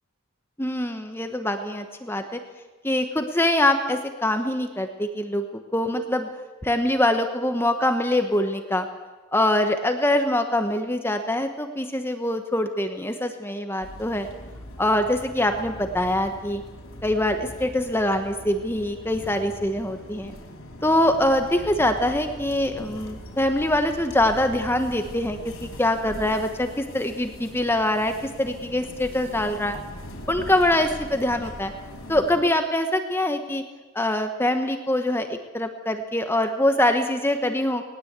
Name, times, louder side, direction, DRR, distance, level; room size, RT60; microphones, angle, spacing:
voice 1, 0.6-2.4 2.8-6.3 6.6-8.9 9.3-14.3 14.8-16.6 17.0-20.3 20.8-29.8 30.3-31.7 32.1-33.6 33.9-37.8, left 1 dB, 10° left, 6 dB, 1.2 m, -24 dB
sound 1, 13.8-32.4, left 1 dB, 80° left, 4.3 m, -41 dB
19.5 x 19.5 x 8.3 m, 1.2 s
head